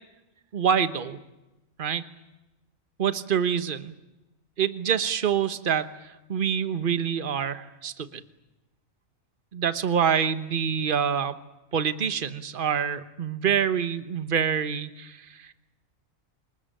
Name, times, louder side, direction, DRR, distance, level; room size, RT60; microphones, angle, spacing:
voice 1, 0.5-1.2 1.8-2.0 3.0-3.9 4.6-5.9 6.3-8.2 9.5-11.4 11.7-15.5, right 7 dB, 40° right, 12 dB, 1.3 m, -26 dB
25.5 x 21.0 x 8.9 m, 1.0 s
omnidirectional pair, 1.4 m